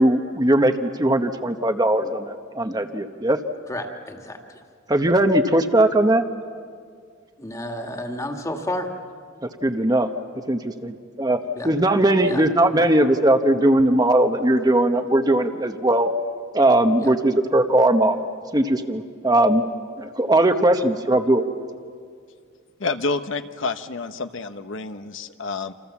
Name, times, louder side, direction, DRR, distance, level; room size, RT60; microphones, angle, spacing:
voice 1, 0.0-3.4 4.9-6.2 9.6-10.1 10.5-11.4 11.6-16.1 16.5-18.2 18.5-19.6 20.0-21.4, right 1 dB, 20° right, 6 dB, 1.0 m, -19 dB
voice 2, 3.7-4.6 7.4-8.9 11.5-11.7 12.2-12.5 12.8-12.9 17.0-17.1, left 1 dB, 15° left, 4 dB, 2.0 m, -31 dB
voice 3, 22.8-25.7, left 3 dB, 70° left, 9 dB, 1.0 m, -28 dB
28.0 x 27.0 x 7.2 m, 2.1 s
head